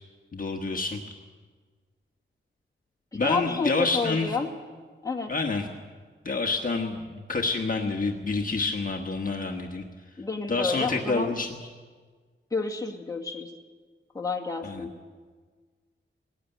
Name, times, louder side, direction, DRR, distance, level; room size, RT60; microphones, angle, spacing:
voice 1, 0.3-1.0 3.1-4.3 5.3-5.7 6.2-9.8 10.5-11.5 14.6-14.8, left 3 dB, 40° left, 1 dB, 1.4 m, -28 dB
voice 2, 3.1-4.5 5.0-5.3 10.2-11.3 12.5-13.5 14.1-14.9, left 4 dB, 15° left, 1 dB, 2.0 m, -30 dB
20.0 x 18.0 x 9.0 m, 1.5 s
wide cardioid pair, 180°, 21 cm